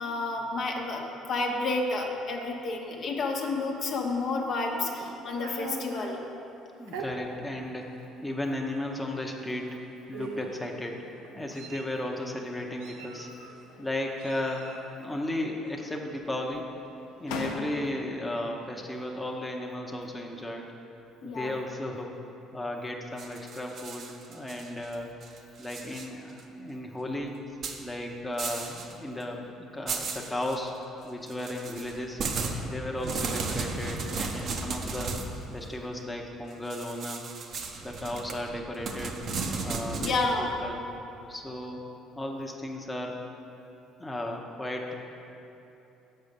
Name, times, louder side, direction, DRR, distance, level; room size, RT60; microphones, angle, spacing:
voice 1, 0.0-6.2 21.2-21.6 40.0-40.5, left 3 dB, 55° left, 1 dB, 0.9 m, -30 dB
Meow, 4.5-6.2 6.9-7.1 7.9-8.0 8.4-8.6 9.6-9.8 10.1-10.6 11.2-12.0 12.8-13.5 14.2-14.9, right 4 dB, 90° right, 0.7 m, -41 dB
voice 2, 6.8-7.9 8.2-9.7 10.1-11.0 11.3-13.3 13.8-16.7 17.2-20.7 21.2-22.1 22.5-25.1 25.6-27.4 27.8-30.7 31.0-32.2 32.6-35.2 35.5-37.3 37.8-39.2 39.6-40.8 41.3-41.8 42.2-43.2 44.0-44.9, left 1 dB, 10° left, 0 dB, 0.8 m, -35 dB
sound 1, 13.4-14.0 14.4-15.2 15.4-16.2 16.8-16.9 17.3-18.2, left 4 dB, 85° left, 0.6 m, -41 dB
sound 2, 23.2-24.9 25.2-26.1 26.4-26.5 27.6-27.8 28.4-28.9 29.2-29.3 29.9-30.6 31.3-35.3 36.7-40.2, right 4 dB, 55° right, 0.7 m, -35 dB
6.5 x 4.8 x 6.7 m, 3.0 s
supercardioid pair, 80°, 0 cm